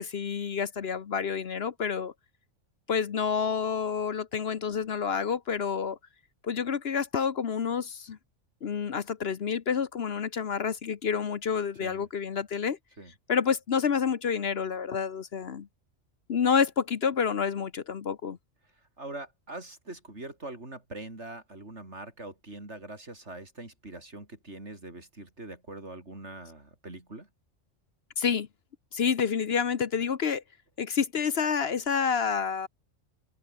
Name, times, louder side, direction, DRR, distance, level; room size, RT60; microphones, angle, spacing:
voice 1, 0.0-2.1 2.9-6.0 6.4-8.2 8.6-12.8 13.3-15.7 16.3-18.4 28.2-28.5 28.9-30.4 30.8-32.7, left 6 dB, 55° left, 1.1 m, -28 dB
voice 2, 19.0-27.3, right 2 dB, 65° right, 5.3 m, -43 dB
open air
omnidirectional pair, 1.3 m